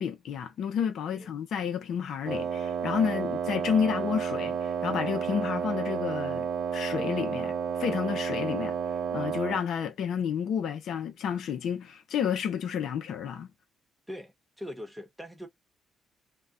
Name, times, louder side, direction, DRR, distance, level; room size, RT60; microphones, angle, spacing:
voice 1, 0.0-7.5 7.8-8.8 9.1-13.5, left 8 dB, 75° left, 0.6 m, -30 dB
Wind instrument woodwind instrument, 2.3-9.7, right 7 dB, 75° right, 0.5 m, -31 dB
voice 2, 14.1-15.5, left 1 dB, ahead, 1.0 m, -41 dB
2.3 x 2.1 x 3.7 m
cardioid pair, 90°, 0 cm